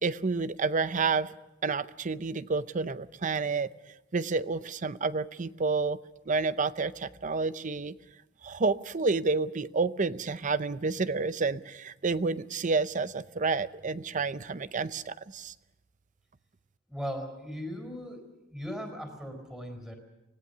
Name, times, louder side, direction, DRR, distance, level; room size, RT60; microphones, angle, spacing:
voice 1, 0.0-1.3 1.6-3.7 4.1-6.0 6.3-7.9 8.4-15.5, right 4 dB, 40° right, 15 dB, 0.6 m, -29 dB
voice 2, 16.9-18.2 18.5-20.0, equal, 5° right, 5 dB, 4.3 m, -38 dB
25.0 x 18.0 x 6.7 m, 1.0 s
head